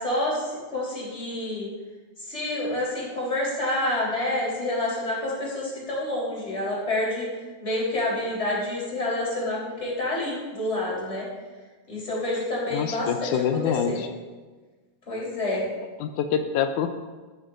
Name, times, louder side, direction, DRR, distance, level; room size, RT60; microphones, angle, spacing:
voice 1, 0.0-1.7 2.3-7.3 7.6-11.3 11.9-13.3 13.6-14.0 15.1-15.6, left 1 dB, 20° left, -5 dB, 3.9 m, -28 dB
voice 2, 12.7-14.1 16.0-16.9, left 8 dB, 85° left, 7 dB, 2.1 m, -26 dB
14.0 x 13.0 x 2.6 m, 1.3 s
omnidirectional pair, 3.4 m